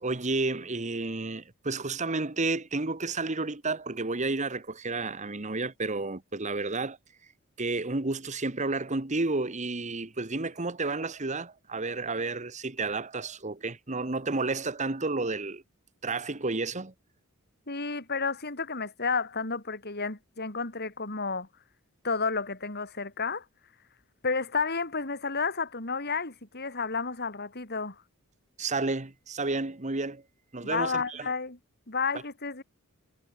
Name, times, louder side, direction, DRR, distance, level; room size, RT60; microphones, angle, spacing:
voice 1, 0.0-7.0 7.6-15.6 16.0-16.9 28.6-30.2 30.5-31.3, right 3 dB, 35° right, 1.5 m, -31 dB
voice 2, 17.7-21.5 22.0-23.4 24.2-28.0 30.6-31.6 31.9-32.6, left 4 dB, 50° left, 4.7 m, -31 dB
head